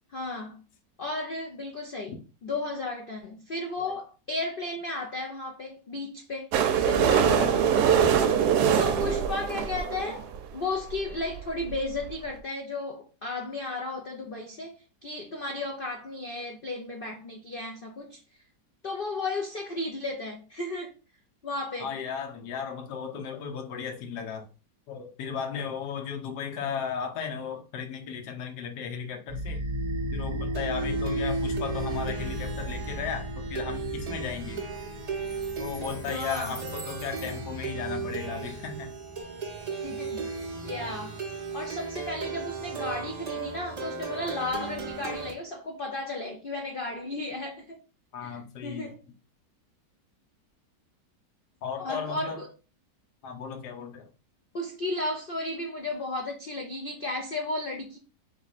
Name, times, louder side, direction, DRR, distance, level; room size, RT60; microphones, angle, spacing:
voice 1, 0.1-0.6 1.0-2.1 2.4-7.3 8.8-18.2 18.8-20.9 21.4-21.9 36.0-36.6 39.8-41.2 41.5-47.8 48.2-49.0 51.8-52.5 54.5-58.0, left 2 dB, 90° left, 0.4 m, -34 dB
sound 1, 6.5-10.4 11.1-11.2 11.3-11.4 11.6-11.7 12.1-12.2, right 8 dB, 70° right, 1.0 m, -23 dB
voice 2, 7.1-8.4 21.8-24.4 24.9-29.6 30.1-34.6 35.6-38.9 48.1-48.9 51.6-52.4 53.2-54.1, left 6 dB, 70° left, 1.4 m, -35 dB
Plucked string instrument, 29.3-45.3, right 2 dB, 45° right, 0.5 m, -34 dB
3.5 x 3.2 x 4.0 m
omnidirectional pair, 1.9 m